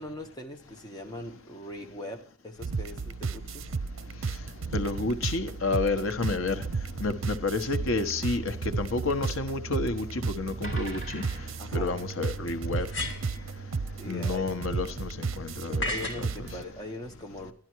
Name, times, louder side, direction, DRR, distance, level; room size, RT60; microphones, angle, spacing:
voice 1, 0.0-3.7 11.6-12.0 14.0-14.6 15.9-17.5, left 1 dB, 20° left, 1.4 m, -41 dB
sound 1, 2.6-16.6, right 4 dB, 80° right, 0.6 m, -34 dB
voice 2, 4.2-12.9 13.8-15.9, left 3 dB, 90° left, 1.1 m, -30 dB
sound 2, 10.6-15.1 15.7-16.8, right 1 dB, 40° left, 6.5 m, -49 dB
sound 3, 10.9-11.0 12.7-13.4 15.8-16.3, left 2 dB, 65° left, 2.5 m, -33 dB
12.0 x 11.5 x 4.6 m
head